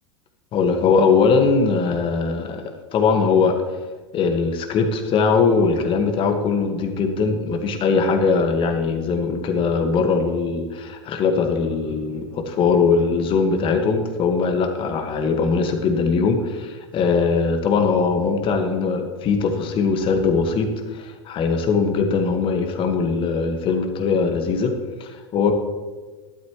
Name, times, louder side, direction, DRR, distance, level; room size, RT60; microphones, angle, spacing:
voice 1, 0.5-2.6 2.9-3.5 4.1-24.7 25.0-25.5, left 5 dB, 35° left, 5 dB, 1.7 m, -20 dB
12.5 x 12.0 x 3.2 m, 1.3 s
figure-of-eight pair, 85°, 14 cm